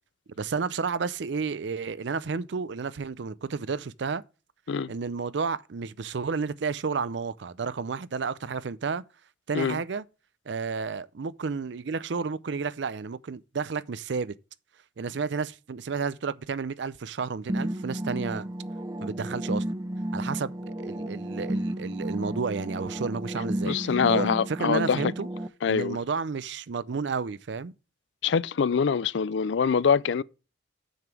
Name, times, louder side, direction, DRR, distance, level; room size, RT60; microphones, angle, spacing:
voice 1, 0.4-4.2 4.9-9.0 9.5-10.0 10.5-14.3 15.0-18.5 19.0-19.6 20.1-23.8 24.1-25.3 25.7-27.7, right 5 dB, 70° right, 0.5 m, -31 dB
sound 1, 17.5-25.5, right 1 dB, 20° right, 0.5 m, -32 dB
voice 2, 23.6-25.1 25.6-26.0 28.2-30.2, left 6 dB, 75° left, 0.4 m, -24 dB
6.9 x 6.5 x 5.9 m
head